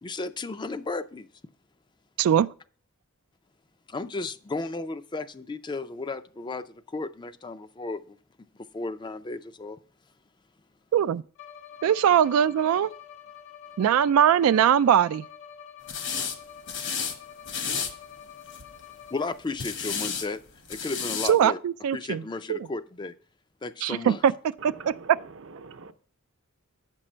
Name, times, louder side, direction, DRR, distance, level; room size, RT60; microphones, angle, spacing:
voice 1, 0.0-1.3 3.9-8.2 8.7-9.8 19.1-20.4 20.7-21.6 21.9-23.1 23.6-24.4, left 3 dB, 20° left, 0.4 m, -34 dB
voice 2, 10.9-11.2 11.8-12.9 13.8-15.2 21.3-22.2 22.5-22.6 23.8-24.3, right 9 dB, 80° right, 0.3 m, -21 dB
Bowed string instrument, 11.4-19.6, left 9 dB, 90° left, 1.3 m, -47 dB
sound 1, 15.9-16.4 16.7-17.2 17.5-17.9 18.5-18.8 19.6-20.3 20.7-21.3, left 6 dB, 60° left, 1.1 m, -31 dB
voice 3, 24.6-25.9, right 4 dB, 65° right, 0.7 m, -44 dB
8.6 x 6.1 x 4.4 m
head